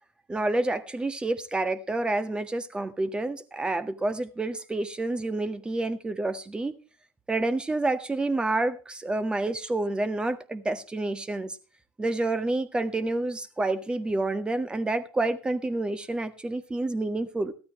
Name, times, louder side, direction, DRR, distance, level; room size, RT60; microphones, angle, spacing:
voice 1, 0.3-6.7 7.3-11.6 12.0-17.5, right 2 dB, 15° right, 1.6 m, -28 dB
16.0 x 13.0 x 3.1 m
hypercardioid pair, 80°, 6 cm